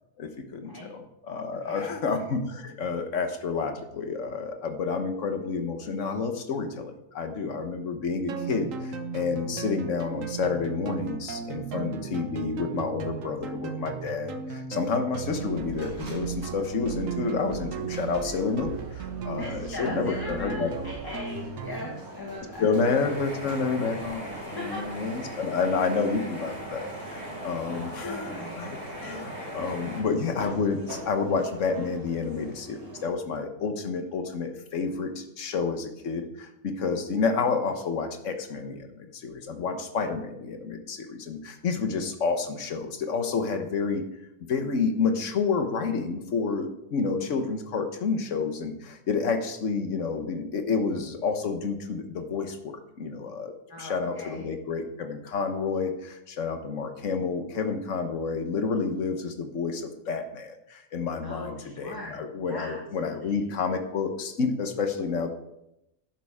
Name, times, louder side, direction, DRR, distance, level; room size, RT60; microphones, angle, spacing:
voice 1, 0.2-20.7 22.6-24.4 24.7-28.7 29.0-44.0 44.5-65.3, left 5 dB, 60° left, 6 dB, 1.5 m, -29 dB
voice 2, 1.5-2.0 19.4-22.7 24.5-24.8 27.7-28.8 53.7-54.5 61.2-62.2 62.4-63.4, left 1 dB, 15° left, -2 dB, 1.6 m, -39 dB
sound 1, 8.3-22.0, right 7 dB, 65° right, 1.2 m, -36 dB
sound 2, 15.1-33.1, right 1 dB, 85° right, 2.7 m, -45 dB
sound 3, 22.8-30.0, equal, 30° right, 4.2 m, -39 dB
12.5 x 11.0 x 3.6 m, 0.84 s
omnidirectional pair, 1.5 m